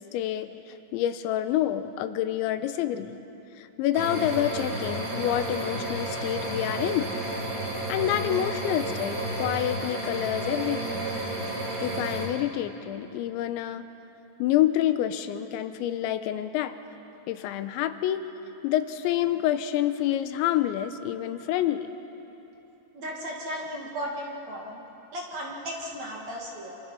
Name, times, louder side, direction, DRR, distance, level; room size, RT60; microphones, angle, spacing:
voice 1, 0.1-3.2 3.6-7.1 7.9-11.2 11.8-13.9 14.4-16.7 17.3-18.3 18.6-21.9 23.5-23.8, left 12 dB, 85° left, 10 dB, 3.1 m, -28 dB
sound 1, 3.9-12.3, right 2 dB, 25° right, 4.2 m, -32 dB
voice 2, 22.9-24.8 25.1-26.7, equal, 45° right, -2 dB, 2.8 m, -35 dB
28.0 x 26.5 x 5.5 m, 3.0 s
omnidirectional pair, 5.2 m